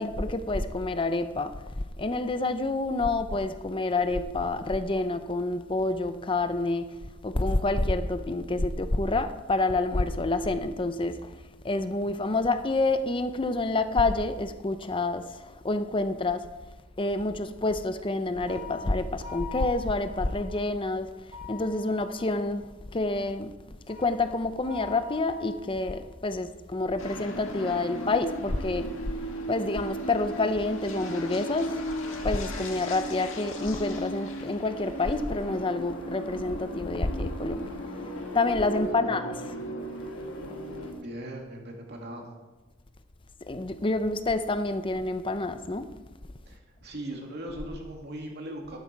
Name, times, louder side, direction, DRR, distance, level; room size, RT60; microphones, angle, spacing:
voice 1, 0.0-1.5 2.0-7.0 7.2-11.2 11.6-16.5 17.0-21.2 21.5-22.6 22.9-23.5 23.9-28.9 29.5-31.9 32.2-37.8 38.3-39.6 43.5-45.9, left 2 dB, 25° left, 0.6 m, -28 dB
sound 1, 18.5-20.6 21.3-22.6 23.9-26.1, left 6 dB, 25° right, 3.4 m, -44 dB
sound 2, 27.0-40.9, equal, 75° left, 2.1 m, -36 dB
voice 2, 38.8-39.3 40.9-42.3 46.5-48.8, right 1 dB, 55° right, 2.5 m, -39 dB
12.5 x 11.5 x 4.7 m
head